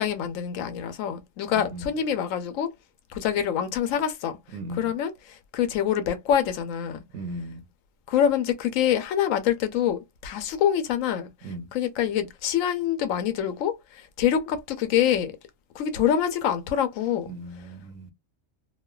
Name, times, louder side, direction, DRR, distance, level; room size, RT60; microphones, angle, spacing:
voice 1, 0.0-2.7 3.1-4.4 4.8-7.0 8.1-11.3 11.7-15.3 15.7-17.3, left 9 dB, 80° left, 1.0 m, -25 dB
voice 2, 1.5-1.9 4.5-4.9 7.1-7.7 11.4-11.7 17.3-18.1, right 1 dB, 70° right, 0.8 m, -37 dB
3.1 x 2.1 x 2.2 m
omnidirectional pair, 1.3 m